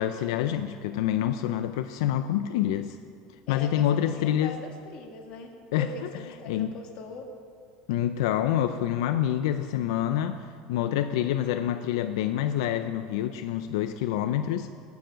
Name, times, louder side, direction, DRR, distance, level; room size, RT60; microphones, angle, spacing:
voice 1, 0.0-3.0 3.5-4.6 5.7-5.9 6.5-6.7 7.9-14.7, left 11 dB, 85° left, 9 dB, 0.5 m, -27 dB
voice 2, 3.5-7.3, left 3 dB, 40° left, 3 dB, 1.6 m, -41 dB
19.5 x 7.0 x 5.2 m, 2.2 s
cardioid pair, 160°, 3 cm